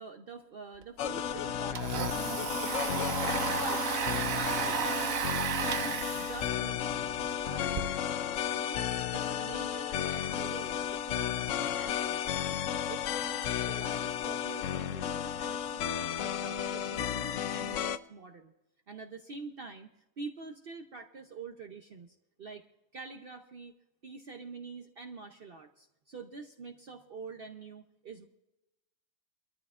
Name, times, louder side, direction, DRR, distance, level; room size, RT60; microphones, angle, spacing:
voice 1, 0.0-2.6 3.4-3.8 4.3-7.1 7.4-18.5 18.9-19.9 20.2-22.6 22.9-23.7 24.0-28.3, right 4 dB, 50° right, 4 dB, 0.9 m, -46 dB
Domestic sounds home sounds, 0.8-0.9 1.2-7.8, right 7 dB, 80° right, 1.3 m, -34 dB
sound 1, 1.0-18.0, left 10 dB, 75° left, 1.0 m, -33 dB
24.0 x 13.5 x 2.5 m, 0.94 s
omnidirectional pair, 1.4 m